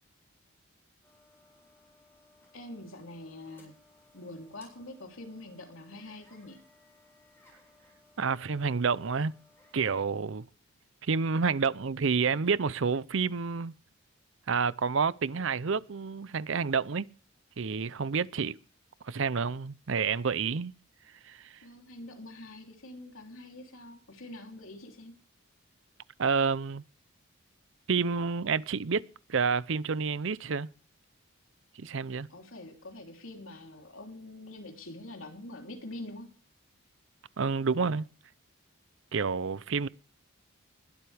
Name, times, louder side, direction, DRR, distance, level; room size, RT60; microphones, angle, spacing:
sound 1, 1.0-9.9, left 2 dB, 10° left, 7.2 m, -62 dB
voice 1, 2.5-3.7 4.1-6.6 21.6-25.1 32.3-36.3, left 1 dB, 70° left, 3.3 m, -45 dB
voice 2, 8.2-9.4 9.7-10.4 11.1-13.7 14.5-17.1 17.6-18.5 19.0-20.7 21.3-21.4 26.2-26.8 27.9-29.0 29.3-30.7 31.8-32.3 37.4-38.1 39.1-39.9, right 5 dB, 60° right, 0.6 m, -29 dB
20.5 x 12.5 x 3.5 m
head